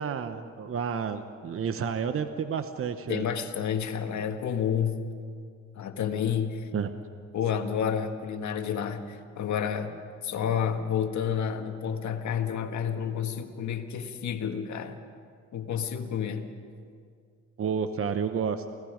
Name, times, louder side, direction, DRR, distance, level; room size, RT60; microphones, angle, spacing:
voice 1, 0.0-3.2 6.7-6.9 17.6-18.6, right 6 dB, 45° right, 9 dB, 1.0 m, -30 dB
voice 2, 3.1-5.0 5.8-6.7 7.3-9.9 10.2-15.0 15.5-16.5, left 8 dB, 70° left, 6 dB, 1.8 m, -30 dB
29.0 x 17.5 x 5.2 m, 2.2 s
cardioid pair, 90°, 30 cm